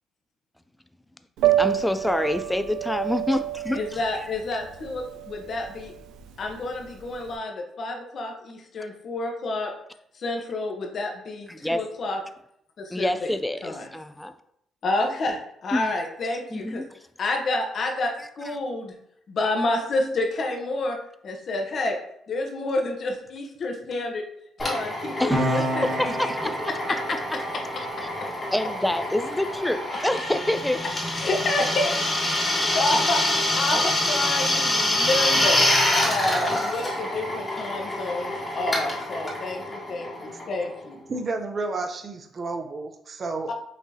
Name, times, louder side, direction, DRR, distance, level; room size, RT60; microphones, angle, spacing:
voice 1, 1.4-3.8 11.5-11.8 12.9-14.3 15.7-15.9 16.5-16.8 25.2-26.6 28.5-30.9, left 1 dB, 5° left, 9 dB, 0.4 m, -27 dB
Piano, 1.4-7.3, right 12 dB, 90° right, 0.4 m, -28 dB
voice 2, 3.7-5.9 6.4-9.7 10.1-12.2 12.8-13.3 13.6-13.9 14.8-16.8 17.2-18.9 19.3-21.0 21.2-22.0 22.3-24.2 24.6-26.3 26.9-27.0 31.2-31.9 32.3-35.7 36.1-41.0 43.5-43.6, left 2 dB, 55° left, 2 dB, 1.0 m, -29 dB
Drill, 24.6-40.9, left 1 dB, 25° left, 1.4 m, -26 dB
Piano 2, 25.3-32.3 32.6-32.8, right 1 dB, 20° right, 1.6 m, -32 dB
voice 3, 41.1-43.5, right 3 dB, 45° right, 6 dB, 0.6 m, -31 dB
5.8 x 3.0 x 2.8 m, 0.73 s
cardioid pair, 90°, 0 cm